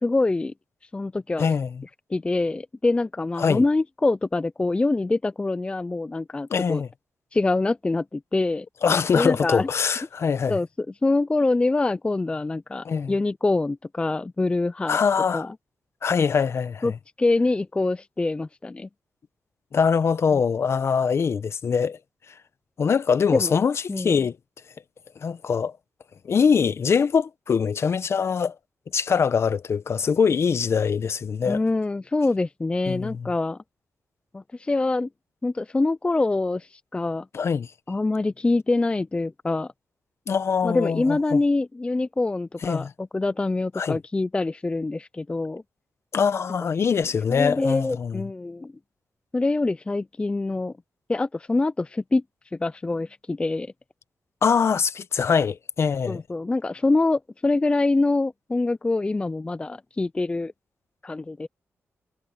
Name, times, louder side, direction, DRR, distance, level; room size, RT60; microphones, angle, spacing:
voice 1, 0.0-0.5 0.9-1.5 2.1-6.8 7.3-8.7 9.1-9.7 10.5-10.7 11.0-15.0 15.3-15.5 16.8-16.9 17.2-18.9 20.3-20.4 23.3-23.6 23.9-24.2 31.4-33.6 34.3-35.1 35.4-37.3 37.9-39.7 40.6-45.6 47.3-48.7 49.3-50.7 51.1-52.2 52.5-53.7 56.1-60.5 61.0-61.5, left 2 dB, 20° left, 0.4 m, -25 dB
voice 2, 1.4-1.8 3.4-3.6 6.5-6.9 8.8-10.6 12.8-13.1 14.9-15.5 16.0-16.9 19.7-22.0 22.8-24.4 25.2-25.7 26.2-28.5 28.9-31.6 32.9-33.3 37.3-37.7 40.3-41.4 42.6-42.9 43.8-44.0 46.1-48.2 54.4-56.2, left 6 dB, 55° left, 0.8 m, -23 dB
cardioid pair, 80°, 5 cm